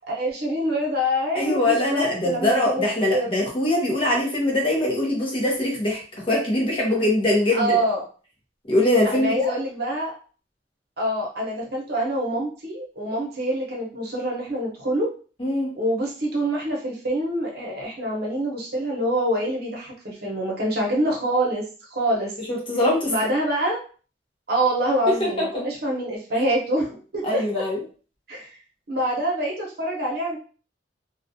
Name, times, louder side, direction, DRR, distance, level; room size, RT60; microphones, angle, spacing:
voice 1, 0.1-3.3 7.5-8.0 9.0-10.1 11.0-15.1 15.7-21.6 21.9-22.3 23.1-23.8 24.5-27.6 28.3-28.5 28.9-30.4, right 1 dB, 60° right, -2 dB, 0.8 m, -25 dB
voice 2, 1.3-6.0 6.3-7.8 8.7-9.5 15.4-15.7 22.5-23.1 25.2-25.6 27.2-27.8, left 1 dB, 30° left, -3 dB, 0.7 m, -22 dB
2.3 x 2.3 x 2.6 m, 0.38 s
head